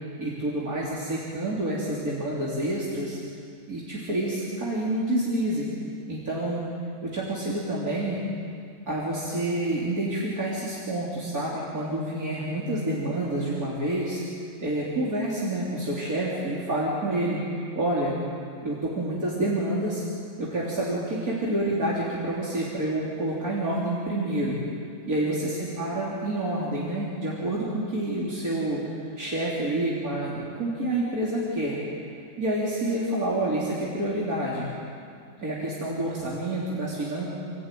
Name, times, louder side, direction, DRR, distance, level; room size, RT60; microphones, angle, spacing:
voice 1, 0.2-3.2 3.7-5.7 6.1-6.6 7.0-8.2 8.9-14.2 14.6-17.4 17.8-18.2 18.6-20.0 20.4-24.7 25.1-28.8 29.2-31.8 32.4-34.7 35.4-37.3, right 1 dB, 80° right, -6 dB, 3.9 m, -28 dB
28.5 x 17.0 x 9.2 m, 2.4 s
omnidirectional pair, 1.5 m